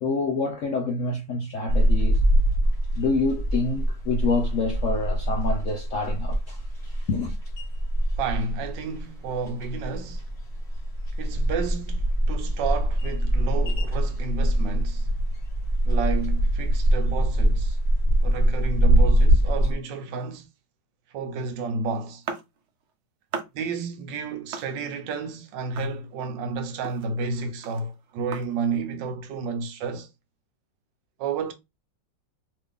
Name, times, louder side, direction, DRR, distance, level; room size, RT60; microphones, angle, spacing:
voice 1, 0.0-2.2 2.9-6.6 6.9-7.4, left 3 dB, 75° left, 0.7 m, -27 dB
sound 1, 1.7-19.7, right 1 dB, 25° left, 1.1 m, -23 dB
voice 2, 8.2-10.2 11.2-15.1 15.8-17.8 18.2-20.5 21.1-22.2 23.5-30.1 31.2-31.5, right 4 dB, 85° right, 1.4 m, -31 dB
sound 2, 22.2-22.9 23.3-23.8 24.5-25.2 25.8-26.5 26.7-28.8, right 5 dB, 65° right, 0.6 m, -38 dB
3.2 x 2.4 x 3.5 m
omnidirectional pair, 1.9 m